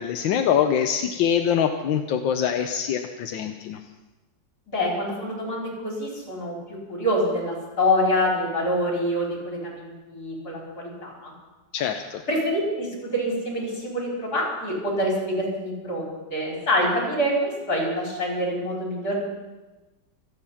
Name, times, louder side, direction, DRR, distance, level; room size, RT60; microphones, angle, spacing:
voice 1, 0.0-3.8 11.7-12.2, left 8 dB, 85° left, 6 dB, 1.5 m, -24 dB
voice 2, 4.7-11.3 12.3-19.2, equal, 55° left, -2 dB, 5.3 m, -26 dB
26.0 x 8.9 x 5.7 m, 1.1 s
omnidirectional pair, 2.0 m